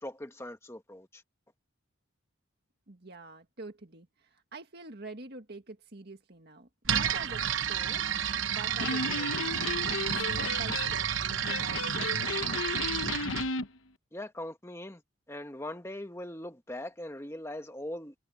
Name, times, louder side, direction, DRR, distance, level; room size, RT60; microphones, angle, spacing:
voice 1, 0.0-1.2 14.1-15.0 15.3-18.1, left 1 dB, 15° left, 1.4 m, -40 dB
voice 2, 2.9-9.6 10.1-12.2, right 3 dB, 50° right, 1.9 m, -46 dB
sound 1, 6.8-13.5, right 9 dB, 65° right, 1.0 m, -31 dB
Electric guitar, 8.7-13.7, left 3 dB, 75° left, 1.0 m, -34 dB
head